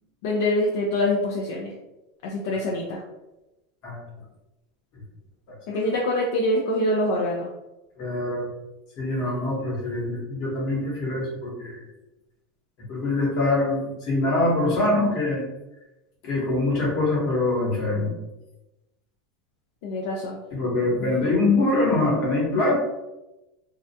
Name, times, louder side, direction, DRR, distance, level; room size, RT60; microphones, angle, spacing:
voice 1, 0.2-1.7 2.2-3.0 5.7-7.5 19.8-20.4, left 1 dB, 70° left, -2 dB, 0.4 m, -25 dB
voice 2, 8.0-8.5 9.0-11.8 12.9-15.4 16.2-18.1 20.5-22.7, left 2 dB, 55° left, -3 dB, 1.1 m, -24 dB
2.3 x 2.1 x 2.7 m, 0.99 s
supercardioid pair, 125°, 0 cm